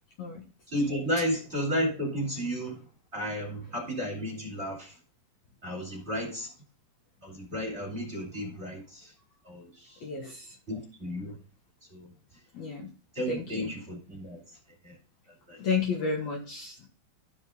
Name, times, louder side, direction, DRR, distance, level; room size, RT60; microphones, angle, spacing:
voice 1, 0.7-2.8 3.1-4.9 5.6-6.5 7.2-9.1 9.5-9.9 10.7-11.4 11.9-12.1 13.1-14.4 14.8-14.9 15.5-15.6, equal, 20° right, 0 dB, 2.7 m, -33 dB
voice 2, 10.0-10.6 12.5-12.9 13.3-13.7 15.6-16.9, left 5 dB, 60° left, 0 dB, 2.2 m, -32 dB
14.0 x 5.3 x 3.7 m, 0.36 s
omnidirectional pair, 4.2 m